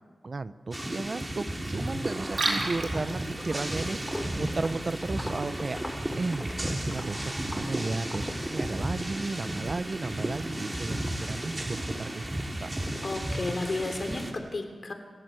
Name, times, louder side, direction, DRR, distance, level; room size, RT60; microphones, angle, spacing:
voice 1, 0.2-12.3 12.6-12.7, right 3 dB, 50° right, 12 dB, 0.8 m, -34 dB
sound 1, 0.7-14.3, right 1 dB, 25° right, 2.9 m, -34 dB
Walk footsteps, 2.2-2.5 2.8-8.9, left 1 dB, 10° left, 4.5 m, -42 dB
Liquid, 2.2-7.2, right 3 dB, 90° right, 3.5 m, -37 dB
voice 2, 13.0-14.9, left 2 dB, 55° left, 5 dB, 3.2 m, -33 dB
28.5 x 12.5 x 7.9 m, 1.5 s
wide cardioid pair, 75°, 0 cm